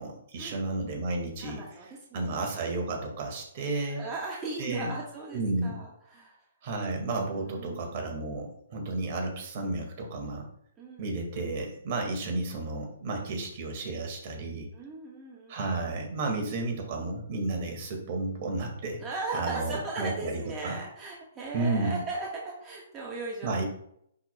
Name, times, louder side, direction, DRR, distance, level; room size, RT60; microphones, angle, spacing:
voice 1, 0.0-1.6 2.1-4.0 4.6-4.9 5.3-5.8 6.6-10.5 11.0-14.7 15.5-19.0 19.3-20.8 21.5-22.0 23.4-23.7, right 2 dB, 45° right, 2 dB, 1.9 m, -32 dB
voice 2, 1.4-2.5 3.8-6.4 7.2-7.9 10.8-11.1 14.7-15.9 19.0-23.6, right 3 dB, 20° right, -4 dB, 1.4 m, -38 dB
10.5 x 4.7 x 2.3 m, 0.69 s
hypercardioid pair, 135°, 0 cm